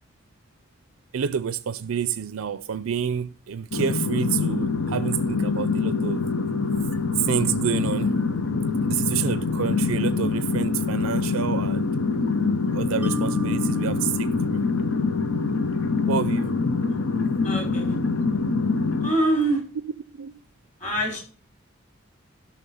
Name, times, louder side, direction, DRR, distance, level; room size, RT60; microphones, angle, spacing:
voice 1, 1.1-6.3 6.7-6.9 7.2-8.1 8.8-11.9 12.7-14.6 16.1-16.5 20.1-20.3, right 8 dB, 85° right, 0.5 m, -28 dB
sound 1, 3.7-19.1, left 4 dB, 80° left, 0.9 m, -25 dB
Mallet percussion, 13.0-16.3, right 1 dB, 5° right, 0.4 m, -38 dB
voice 2, 17.4-18.0 19.0-19.6 20.8-21.2, right 1 dB, 35° left, 4.8 m, -24 dB
12.5 x 5.8 x 5.6 m
head